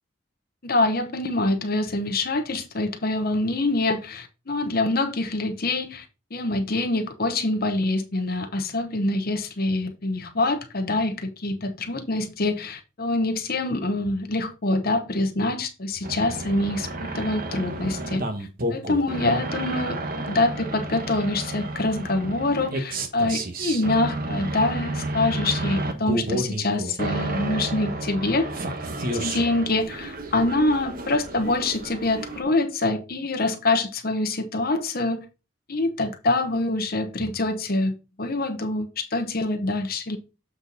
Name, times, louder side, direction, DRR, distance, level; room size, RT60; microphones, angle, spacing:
voice 1, 0.6-6.1 6.3-28.5 29.0-35.2 35.7-37.9 38.2-40.2, left 2 dB, 50° left, 1.0 m, -25 dB
sound 1, 16.0-32.4, right 2 dB, 50° right, 1.2 m, -31 dB
7.7 x 4.4 x 4.0 m
head